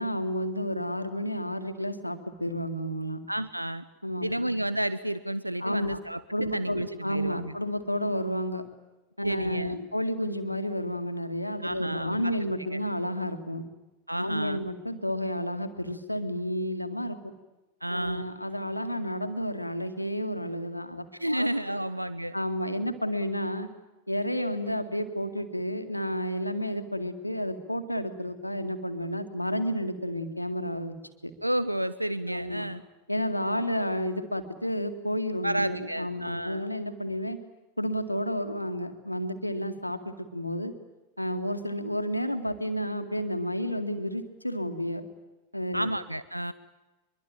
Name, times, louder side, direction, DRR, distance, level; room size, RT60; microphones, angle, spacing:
voice 1, 0.0-3.2 4.0-4.3 5.6-6.0 6.3-8.7 9.2-13.6 14.2-17.3 17.9-21.5 22.3-23.7 24.1-30.9 31.2-31.3 32.3-32.7 33.1-37.4 37.8-40.7 41.2-45.1 45.5-45.9, equal, 90° left, 8 dB, 2.1 m, -31 dB
voice 2, 3.3-3.8 4.2-7.5 9.2-9.9 11.6-12.3 12.7-12.8 14.1-14.6 17.8-18.3 21.2-22.3 31.4-32.8 35.4-36.6 45.7-46.5, right 1 dB, 90° right, 15 dB, 0.8 m, -31 dB
24.0 x 23.0 x 8.9 m, 1.1 s
figure-of-eight pair, 90°, 0 cm